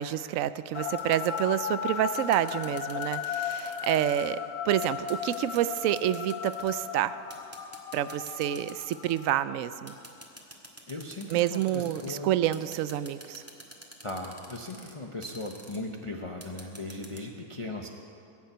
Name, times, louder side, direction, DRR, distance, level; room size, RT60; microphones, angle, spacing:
voice 1, 0.0-7.2 7.9-10.0 11.3-13.4, right 12 dB, 70° right, 14 dB, 0.9 m, -28 dB
sound 1, 0.7-10.2, left 8 dB, 75° left, 1.2 m, -36 dB
sound 2, 1.0-1.5 2.1-4.3 4.8-6.9 7.3-9.3 9.9-12.2 12.5-14.9 15.2-15.8 16.4-17.2, right 1 dB, 10° right, 1.7 m, -48 dB
voice 2, 10.9-12.3 14.0-17.9, left 2 dB, 25° left, 1 dB, 0.7 m, -38 dB
21.5 x 7.2 x 9.1 m, 2.6 s
omnidirectional pair, 1.6 m